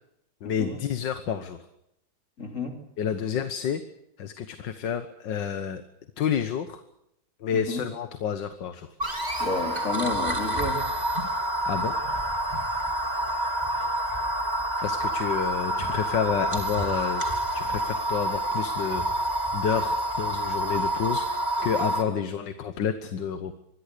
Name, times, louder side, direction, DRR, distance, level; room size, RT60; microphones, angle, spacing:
voice 1, 0.4-1.6 3.0-3.8 4.2-5.8 6.2-6.8 7.4-8.9 11.6-11.9 14.8-17.2 17.5-23.5, left 7 dB, 75° left, 9 dB, 1.8 m, -29 dB
voice 2, 2.4-2.7 7.5-7.8 9.4-10.8, left 3 dB, 40° left, 4 dB, 3.4 m, -31 dB
sound 1, 9.0-22.0, right 1 dB, 20° right, 2.9 m, -28 dB
25.5 x 21.5 x 6.8 m, 0.80 s
omnidirectional pair, 2.0 m